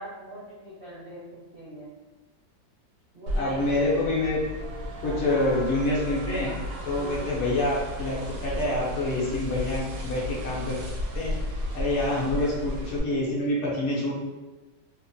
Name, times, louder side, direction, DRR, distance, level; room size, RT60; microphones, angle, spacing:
voice 1, 0.0-1.9 3.1-3.8 5.0-5.4 6.9-7.4 11.9-12.6, right 1 dB, 55° right, -10 dB, 0.7 m, -40 dB
voice 2, 3.3-4.4 5.0-6.5 6.8-8.2 8.4-10.8 11.1-11.3 11.7-14.1, left 2 dB, 60° left, -5 dB, 0.7 m, -26 dB
sound 1, 3.3-13.0, left 1 dB, 80° right, 1.2 m, -34 dB
2.9 x 2.0 x 2.5 m, 1.2 s
omnidirectional pair, 1.8 m